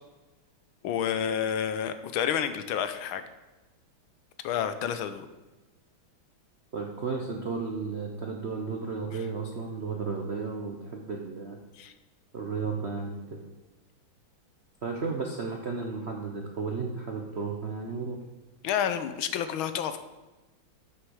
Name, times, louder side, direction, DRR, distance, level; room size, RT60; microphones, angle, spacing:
voice 1, 0.8-3.2 4.4-5.3 11.8-11.9 18.6-20.0, left 9 dB, 80° left, 10 dB, 1.5 m, -29 dB
voice 2, 6.7-11.6 12.3-13.4 14.8-18.2, right 4 dB, 55° right, 1 dB, 0.7 m, -33 dB
8.0 x 6.3 x 6.3 m, 1.1 s
omnidirectional pair, 2.3 m